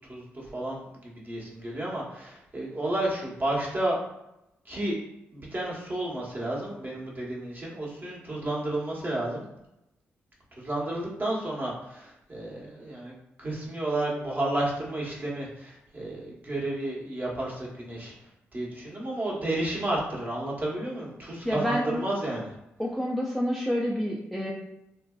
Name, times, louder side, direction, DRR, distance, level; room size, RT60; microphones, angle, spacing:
voice 1, 0.1-4.0 4.6-5.0 5.3-9.4 10.6-13.1 13.4-18.1 18.5-22.5, right 1 dB, 35° right, -4 dB, 1.0 m, -31 dB
voice 2, 21.5-22.0 22.8-24.5, equal, ahead, -2 dB, 0.4 m, -28 dB
2.6 x 2.1 x 2.3 m, 0.88 s
supercardioid pair, 45°, 5 cm